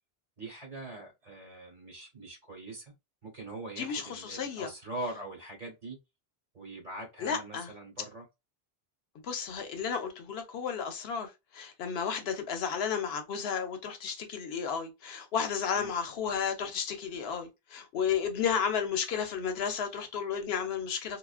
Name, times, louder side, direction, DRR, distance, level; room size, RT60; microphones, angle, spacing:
voice 1, 0.4-2.9 3.2-6.0 6.5-8.2 15.7-15.9, right 2 dB, 40° right, 1.0 m, -42 dB
voice 2, 3.8-4.7 7.2-7.7 9.2-21.2, left 7 dB, 75° left, 0.8 m, -33 dB
2.4 x 2.2 x 2.3 m
omnidirectional pair, 1.1 m